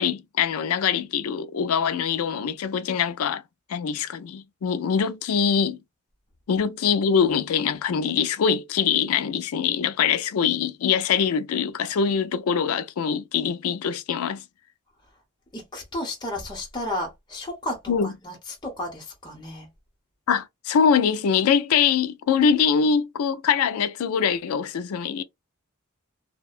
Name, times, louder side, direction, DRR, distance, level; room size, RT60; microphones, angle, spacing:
voice 1, 0.0-3.4 3.7-5.8 6.5-14.4 17.9-18.1 20.3-25.2, left 7 dB, 80° left, 0.4 m, -23 dB
voice 2, 15.5-19.7, left 1 dB, 20° left, 0.9 m, -33 dB
2.7 x 2.2 x 2.4 m
head